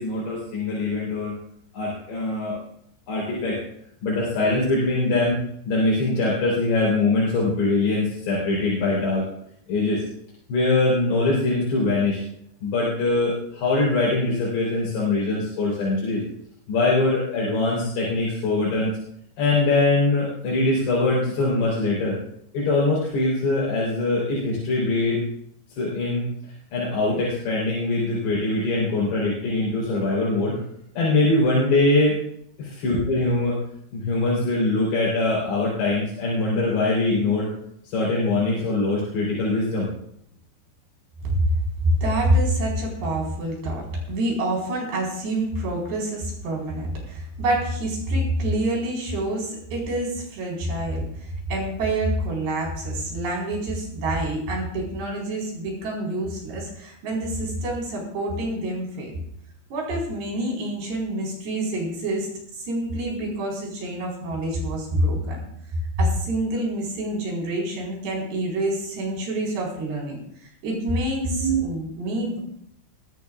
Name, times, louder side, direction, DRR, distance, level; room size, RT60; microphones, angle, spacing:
voice 1, 0.0-1.4 1.7-2.6 3.1-3.6 4.0-5.4 5.7-9.3 9.7-10.0 10.5-12.2 12.6-16.2 16.7-18.9 19.4-22.2 22.5-25.2 25.8-30.6 31.0-32.2 32.6-33.6 33.9-37.5 37.8-39.9 71.2-71.6, left 2 dB, 75° left, -5 dB, 5.8 m, -22 dB
voice 2, 41.8-59.1 59.7-62.3 62.6-65.4 66.0-72.4, right 1 dB, 75° right, -1 dB, 6.7 m, -27 dB
21.5 x 15.0 x 2.4 m, 0.71 s
omnidirectional pair, 4.9 m